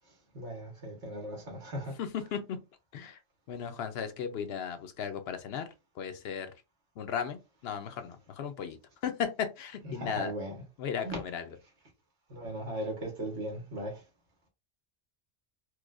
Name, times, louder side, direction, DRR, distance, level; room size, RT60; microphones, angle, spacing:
voice 1, 0.3-2.0 9.8-10.5 11.0-11.2 12.3-14.0, right 1 dB, 80° right, 1.5 m, -37 dB
voice 2, 2.0-2.6 2.9-3.2 3.5-5.7 6.0-6.5 7.0-8.8 9.0-10.3 10.8-11.6, left 7 dB, 70° left, 0.8 m, -36 dB
4.6 x 2.1 x 2.4 m
omnidirectional pair, 1.2 m